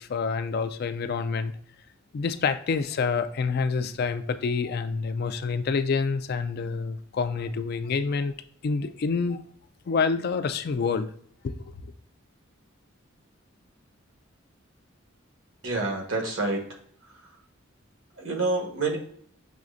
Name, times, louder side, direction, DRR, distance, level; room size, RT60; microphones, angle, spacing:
voice 1, 0.0-1.5 2.1-8.3 8.6-9.4 9.9-11.1 11.8-11.9, left 5 dB, 50° left, 11 dB, 0.3 m, -27 dB
voice 2, 15.6-16.6 18.2-19.0, right 3 dB, 80° right, 1 dB, 1.3 m, -27 dB
6.2 x 3.2 x 2.5 m, 0.62 s
head